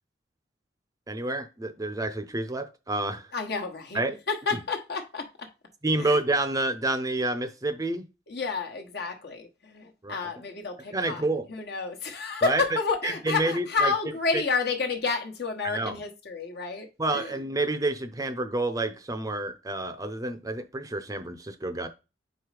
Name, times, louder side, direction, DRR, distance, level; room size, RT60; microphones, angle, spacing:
voice 1, 1.1-3.3 3.9-4.2 5.8-8.0 10.0-10.1 10.9-11.4 12.4-12.6 13.0-13.9 15.6-15.9 17.0-21.9, right 2 dB, 20° right, 0.5 m, -29 dB
voice 2, 3.3-5.5 6.0-6.2 8.3-17.4, left 4 dB, 60° left, 1.2 m, -30 dB
4.7 x 4.1 x 4.9 m
head